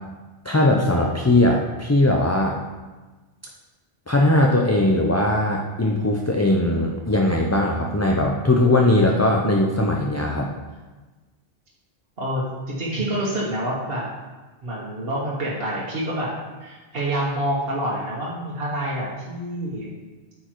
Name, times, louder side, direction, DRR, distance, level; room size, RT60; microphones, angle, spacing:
voice 1, 0.4-2.6 4.1-10.5, left 1 dB, 20° left, 0 dB, 0.6 m, -19 dB
voice 2, 12.2-14.0 14.6-16.3 16.6-19.9, right 1 dB, 60° right, -6 dB, 1.8 m, -27 dB
8.9 x 6.9 x 4.6 m, 1.2 s
omnidirectional pair, 1.1 m